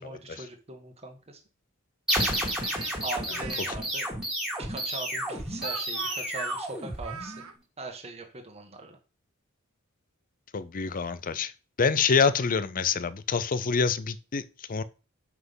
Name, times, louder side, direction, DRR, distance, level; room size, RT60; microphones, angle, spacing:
voice 1, 0.0-1.4 3.0-4.1 4.6-7.3 7.8-9.0, right 2 dB, 30° right, 1.4 m, -41 dB
sound 1, 2.1-7.5, right 1 dB, 5° right, 2.2 m, -31 dB
Speech, 2.6-3.6 4.5-7.5, right 7 dB, 75° right, 0.8 m, -41 dB
voice 2, 10.5-11.5 11.8-14.4 14.7-14.8, left 5 dB, 40° left, 0.5 m, -26 dB
5.9 x 5.7 x 5.6 m
head